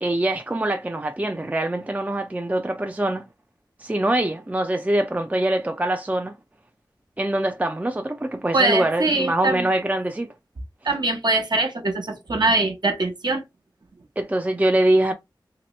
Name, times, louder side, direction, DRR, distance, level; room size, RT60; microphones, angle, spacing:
voice 1, 0.0-3.3 3.8-6.3 7.2-10.3 14.2-15.1, right 1 dB, 20° right, 0.5 m, -23 dB
voice 2, 8.5-9.7 10.8-13.4, right 2 dB, 60° right, 1.0 m, -22 dB
3.0 x 2.9 x 3.1 m
cardioid pair, 45°, 8 cm